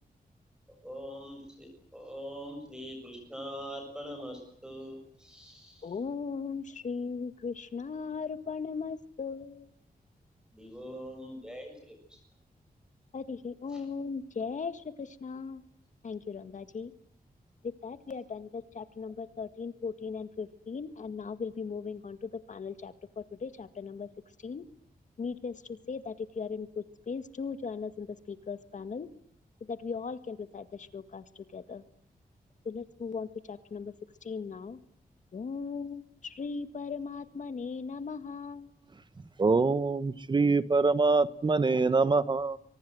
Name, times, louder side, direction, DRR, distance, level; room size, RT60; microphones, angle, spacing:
voice 1, 0.8-5.9 10.5-12.2 13.7-13.8, equal, 5° right, 7.1 m, -43 dB
voice 2, 5.8-9.7 13.1-15.6 16.0-16.9 17.8-24.1 24.4-24.6 25.2-29.1 29.7-31.2 31.5-31.8 32.7-33.9 34.2-34.8 35.3-38.7, left 5 dB, 55° left, 1.9 m, -38 dB
voice 3, 39.4-42.6, right 3 dB, 30° right, 1.1 m, -25 dB
30.0 x 24.0 x 7.9 m
wide cardioid pair, 175°, 15 cm